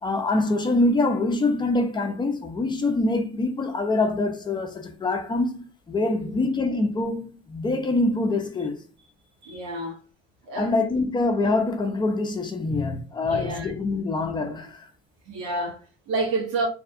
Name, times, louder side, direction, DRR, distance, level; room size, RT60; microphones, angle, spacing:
voice 1, 0.0-8.8 10.6-14.9, left 2 dB, 20° left, 0.6 m, -25 dB
voice 2, 9.4-10.0 10.4-10.7 12.7-13.0 13.2-13.7 15.3-16.7, right 2 dB, 85° right, 1.0 m, -29 dB
2.6 x 2.3 x 2.6 m
cardioid pair, 95°, 20 cm